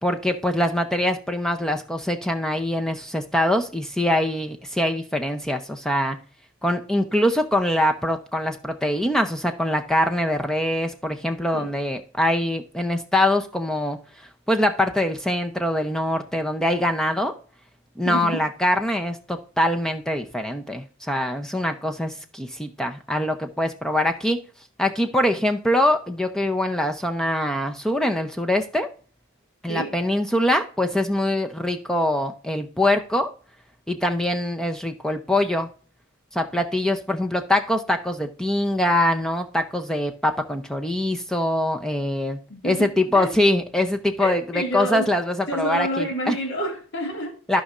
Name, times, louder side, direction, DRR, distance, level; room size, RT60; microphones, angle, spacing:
voice 1, 0.0-6.2 6.6-14.0 14.5-17.3 18.0-24.4 24.8-28.9 29.6-33.3 33.9-35.7 36.3-42.4 42.6-46.4 47.5-47.6, left 1 dB, 5° left, 0.6 m, -23 dB
voice 2, 18.0-18.5 29.7-30.0 42.5-42.9 43.1-43.4 44.2-45.1 45.5-47.6, equal, 55° left, 2.2 m, -29 dB
14.5 x 5.4 x 2.5 m
head